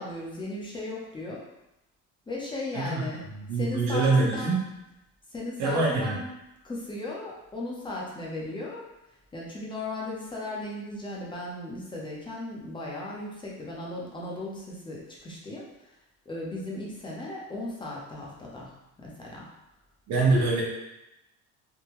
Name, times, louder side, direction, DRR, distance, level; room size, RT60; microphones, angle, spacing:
voice 1, 0.0-1.4 2.3-3.2 3.5-4.7 5.3-6.3 6.6-8.8 9.3-15.7 16.3-18.7 19.0-19.5 20.2-20.4, left 2 dB, 15° left, -4 dB, 0.7 m, -36 dB
voice 2, 3.3-4.6 5.6-6.2 20.1-20.6, right 3 dB, 60° right, -3 dB, 1.1 m, -24 dB
3.6 x 2.2 x 3.0 m, 0.92 s
cardioid pair, 135°, 32 cm